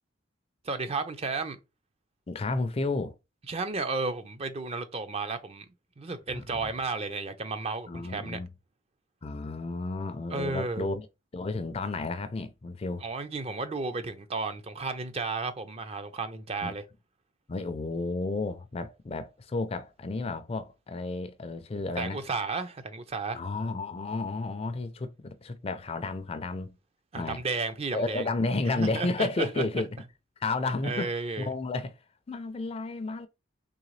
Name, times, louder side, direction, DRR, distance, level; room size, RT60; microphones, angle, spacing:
voice 1, 0.6-1.6 3.5-5.7 6.0-8.4 10.3-10.9 13.0-16.8 22.0-23.4 27.1-28.2 28.8-29.6 30.8-31.5, right 3 dB, 30° right, 0.5 m, -33 dB
voice 2, 2.3-3.2 6.3-6.7 7.9-8.5 9.2-11.1 11.3-13.0 16.6-16.8 17.5-22.2 23.3-26.7 27.1-27.4 27.9-29.9 30.4-32.0 32.3-33.3, left 3 dB, 30° left, 0.4 m, -32 dB
3.8 x 3.1 x 3.1 m
head